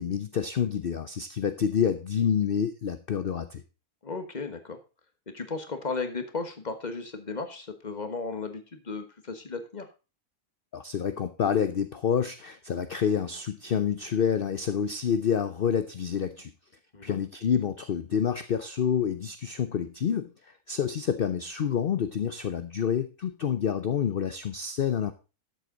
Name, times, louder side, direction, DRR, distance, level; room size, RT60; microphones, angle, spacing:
voice 1, 0.0-3.6 10.7-16.5 17.0-25.1, left 8 dB, 50° left, 10 dB, 0.7 m, -28 dB
voice 2, 4.0-4.8 5.3-9.9 16.9-17.2, left 4 dB, 30° left, 8 dB, 1.4 m, -35 dB
12.5 x 7.9 x 3.9 m, 0.31 s
omnidirectional pair, 1.6 m